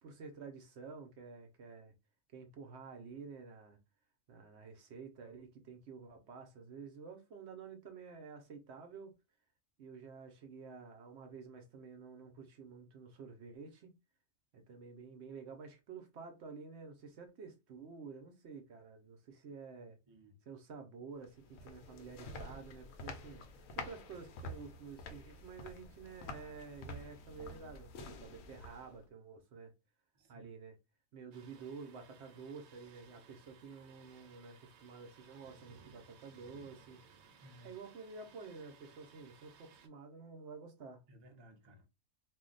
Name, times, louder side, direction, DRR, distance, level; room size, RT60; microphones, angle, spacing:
voice 1, 0.0-1.9 2.3-3.8 4.3-9.1 9.8-13.9 14.5-20.0 20.5-23.4 23.8-29.7 30.3-30.7 31.1-37.0 37.6-41.0, right 5 dB, 65° right, 0.8 m, -50 dB
voice 2, 20.0-20.4 30.1-30.5 37.4-37.7 41.1-41.9, equal, 30° right, 0.5 m, -60 dB
sound 1, 21.2-29.0, left 2 dB, 85° left, 1.0 m, -49 dB
Thunder, 31.3-39.9, right 6 dB, 90° right, 1.0 m, -61 dB
2.5 x 2.1 x 3.8 m
omnidirectional pair, 1.4 m